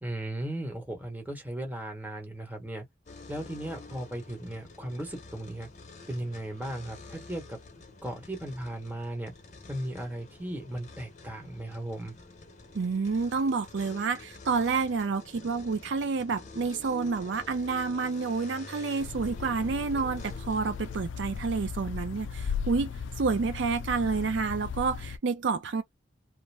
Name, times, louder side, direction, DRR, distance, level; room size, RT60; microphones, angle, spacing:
voice 1, 0.0-2.9 3.3-5.7 6.1-7.6 8.0-9.3 9.7-12.1, right 1 dB, 10° right, 1.0 m, -36 dB
sound 1, 3.1-21.0, left 3 dB, 40° left, 0.6 m, -48 dB
voice 2, 12.7-25.8, right 4 dB, 70° right, 0.5 m, -29 dB
sound 2, 19.0-25.2, left 6 dB, 75° left, 0.4 m, -37 dB
2.5 x 2.1 x 3.3 m
head